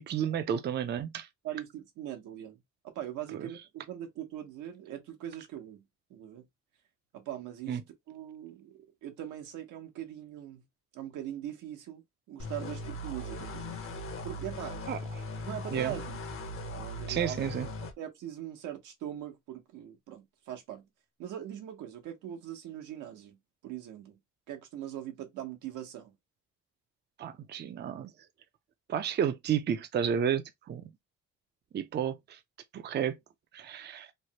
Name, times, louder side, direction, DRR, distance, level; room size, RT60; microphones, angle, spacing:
voice 1, 0.0-1.3 3.4-3.5 7.7-7.8 14.9-15.0 15.7-16.0 17.1-17.7 27.2-28.1 28.9-30.8 31.7-32.4 32.7-33.2 33.5-34.1, right 8 dB, 35° right, 0.4 m, -31 dB
voice 2, 1.4-2.6 2.9-5.8 6.1-6.4 7.1-7.8 8.1-10.6 10.9-12.0 12.3-13.8 14.2-14.8 15.4-16.1 16.8-17.5 18.0-20.9 21.2-23.4 23.6-24.2 24.5-26.1, right 11 dB, 90° right, 0.9 m, -41 dB
sound 1, 12.4-17.9, left 1 dB, 45° left, 0.8 m, -39 dB
3.2 x 2.1 x 2.8 m
cardioid pair, 90°, 30 cm